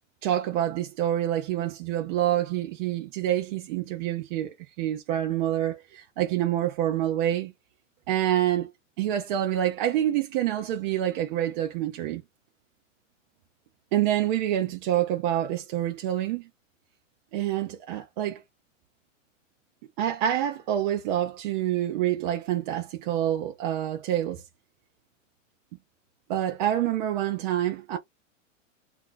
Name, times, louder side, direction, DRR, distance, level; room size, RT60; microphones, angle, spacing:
voice 1, 0.2-7.5 8.1-8.7 9.0-12.2 13.9-16.5 17.3-18.4 20.0-24.4 26.3-28.0, right 12 dB, 40° right, 0.5 m, -27 dB
2.4 x 2.3 x 3.7 m
supercardioid pair, 150°, 39 cm